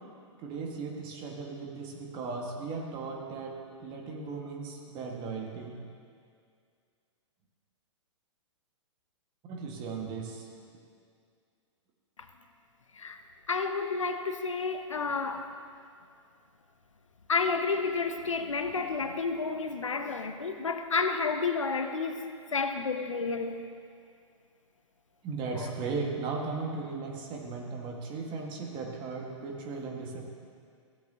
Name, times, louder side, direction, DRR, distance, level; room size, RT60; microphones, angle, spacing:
voice 1, 0.4-5.8 9.5-10.5 25.2-30.3, right 4 dB, 30° right, 0 dB, 1.7 m, -37 dB
voice 2, 13.5-15.5 17.3-23.6 25.6-25.7, left 4 dB, 80° left, 7 dB, 0.8 m, -31 dB
16.0 x 8.4 x 2.8 m, 2.2 s
figure-of-eight pair, 115°, 16 cm